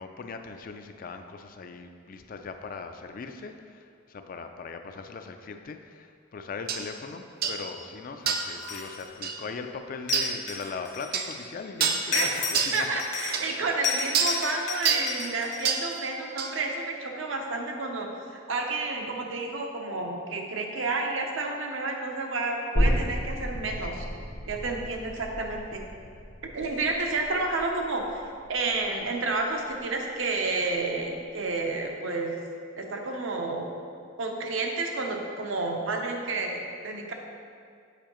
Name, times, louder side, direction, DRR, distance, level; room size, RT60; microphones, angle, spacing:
voice 1, 0.0-12.9, left 4 dB, 45° left, 6 dB, 0.3 m, -39 dB
sound 1, 6.7-6.8 7.4-7.6 8.3-8.5 9.2-9.4 10.1-10.3 11.1-11.3 11.8-12.1 12.5-12.8 13.3-13.4 14.1-14.4 14.8-15.1 15.6-15.9 16.4-16.5, right 6 dB, 50° right, 0.4 m, -26 dB
sound 2, 8.6-9.2 10.1-11.4 12.1-13.5 13.8-16.0, left 4 dB, 60° left, 1.2 m, -32 dB
voice 2, 12.7-24.0 24.5-25.8 26.5-28.2 28.5-32.3 32.8-33.7 34.2-37.1, right 3 dB, 80° right, 2 dB, 0.7 m, -30 dB
sound 3, 22.8-30.0 30.4-30.5, equal, 85° left, 0.8 m, -32 dB
6.7 x 5.4 x 3.0 m, 2.2 s
head